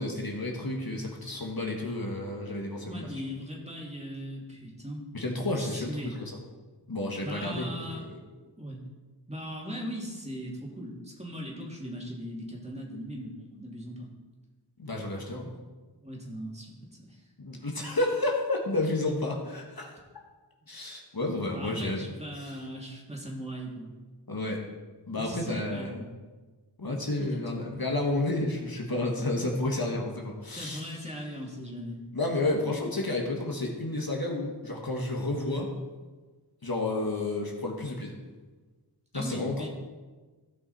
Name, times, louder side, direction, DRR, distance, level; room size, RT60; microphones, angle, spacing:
voice 1, 0.0-3.1 5.1-6.3 6.9-7.7 7.9-8.2 14.8-15.6 17.4-19.9 20.7-22.0 22.4-22.5 24.3-24.6 25.1-26.0 26.8-30.9 32.1-35.7 36.6-38.2 39.1-39.7, left 2 dB, 55° left, 0 dB, 1.5 m, -31 dB
voice 2, 2.9-5.0 5.6-6.1 7.2-8.0 8.6-8.8 9.3-14.1 15.4-15.5 16.0-17.3 21.5-23.9 25.2-26.0 27.2-27.9 30.5-32.0 39.1-39.7, equal, 15° right, -3 dB, 2.6 m, -39 dB
15.5 x 5.7 x 4.2 m, 1.3 s
wide cardioid pair, 50°, 43 cm